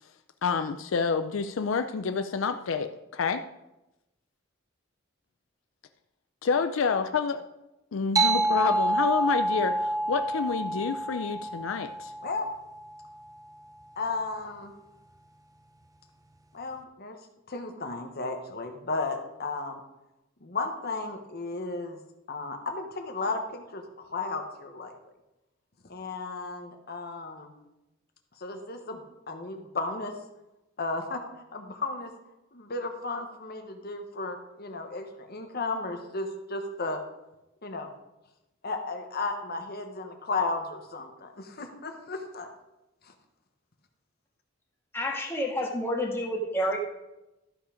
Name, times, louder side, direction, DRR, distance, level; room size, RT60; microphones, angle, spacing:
voice 1, 0.4-3.4 6.4-7.4 7.9-12.1, left 5 dB, 75° left, 8 dB, 0.4 m, -28 dB
sound 1, 8.2-13.1, right 1 dB, 20° right, 0.6 m, -28 dB
voice 2, 14.0-14.7 16.5-17.2 17.5-19.8 20.4-22.0 22.3-24.9 25.8-27.5 28.4-30.2 30.8-37.0 37.6-37.9 38.6-42.5 43.0-43.1, left 3 dB, 50° left, 5 dB, 1.1 m, -34 dB
voice 3, 44.9-46.8, equal, 10° left, -1 dB, 1.6 m, -29 dB
13.0 x 5.7 x 5.0 m, 0.96 s
head